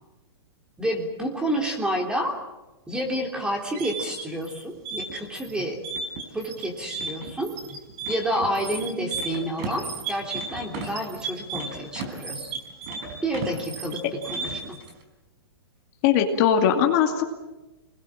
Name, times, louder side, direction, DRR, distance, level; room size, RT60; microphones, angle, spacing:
voice 1, 0.8-2.4 2.9-5.8 6.3-7.6 8.1-12.5 13.2-14.8, equal, 5° right, 2 dB, 3.3 m, -29 dB
sound 1, 3.5-14.8, right 4 dB, 40° right, 4.9 m, -34 dB
voice 2, 16.0-17.2, left 8 dB, 40° left, 3 dB, 2.4 m, -20 dB
27.0 x 20.5 x 7.6 m, 1.0 s
hypercardioid pair, 155°, 14 cm